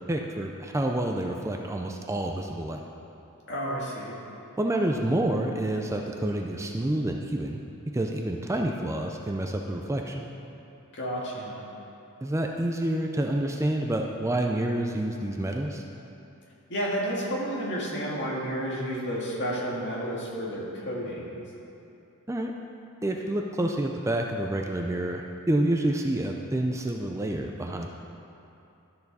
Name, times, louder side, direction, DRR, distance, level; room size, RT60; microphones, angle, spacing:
voice 1, 0.1-2.8 4.6-7.6 7.9-10.3 12.2-15.8 22.3-22.5 23.0-27.9, right 1 dB, 15° right, 2 dB, 0.4 m, -28 dB
voice 2, 3.5-4.1 10.9-11.6 16.7-21.4, equal, 55° left, -4 dB, 1.9 m, -31 dB
12.5 x 6.7 x 4.1 m, 2.8 s
head